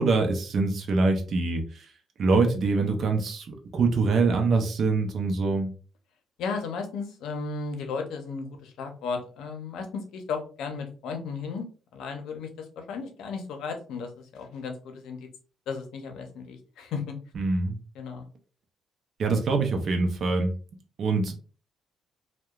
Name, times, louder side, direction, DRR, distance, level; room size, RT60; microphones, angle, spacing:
voice 1, 0.0-1.8 2.2-5.7 17.3-17.8 19.2-20.5 21.0-21.4, right 3 dB, 60° right, 4 dB, 0.6 m, -24 dB
voice 2, 6.4-11.6 11.9-12.5 12.8-15.3 15.7-17.1 17.9-18.2, left 5 dB, 85° left, 5 dB, 0.6 m, -34 dB
2.8 x 2.2 x 2.3 m, 0.38 s
cardioid pair, 90°, 0 cm